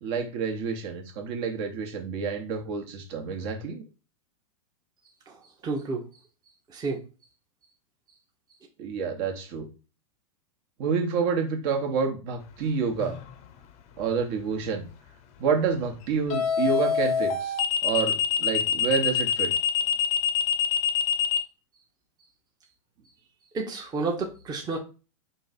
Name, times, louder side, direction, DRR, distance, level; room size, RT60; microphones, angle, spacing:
voice 1, 0.0-3.8 8.8-9.7 10.8-13.2 14.0-14.9 15.4-17.5 17.8-19.5, right 5 dB, 50° right, 4 dB, 1.1 m, -28 dB
voice 2, 5.6-6.0 6.7-7.0 23.5-24.8, right 3 dB, 20° right, 1 dB, 0.8 m, -30 dB
sound 1, 13.0-13.3 16.3-21.4, left 8 dB, 40° left, 0.7 m, -24 dB
3.8 x 2.6 x 4.1 m, 0.33 s
hypercardioid pair, 110°, 18 cm